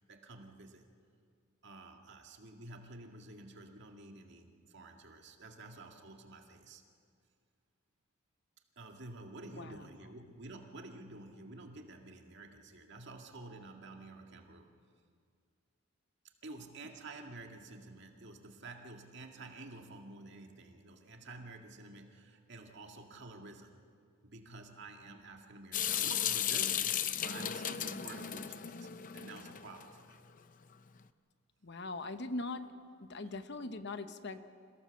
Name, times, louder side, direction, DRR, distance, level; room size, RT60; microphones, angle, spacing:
voice 1, 0.1-0.9 1.6-6.8 8.8-14.7 16.4-23.8 24.2-30.2, right 2 dB, 55° right, 3 dB, 2.1 m, -50 dB
voice 2, 9.5-10.1 31.6-32.7 33.0-34.4, left 2 dB, 55° left, 9 dB, 1.0 m, -41 dB
Water tap faucet / Sink (filling or washing) / Drip, 25.7-29.8, left 9 dB, 40° left, 0.6 m, -35 dB
27.5 x 17.0 x 7.2 m, 2.2 s
head